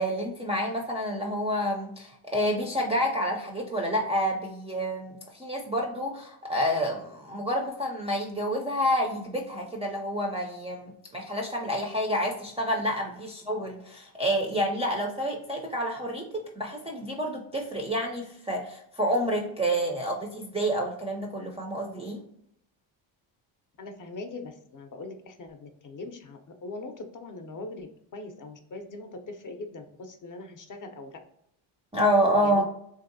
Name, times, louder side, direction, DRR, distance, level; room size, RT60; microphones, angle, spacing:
voice 1, 0.0-22.2 31.9-32.6, equal, 15° right, 0 dB, 0.3 m, -28 dB
voice 2, 23.8-31.2 32.4-32.6, left 2 dB, 40° left, 5 dB, 0.5 m, -41 dB
3.3 x 2.6 x 2.5 m, 0.73 s
cardioid pair, 90°, 49 cm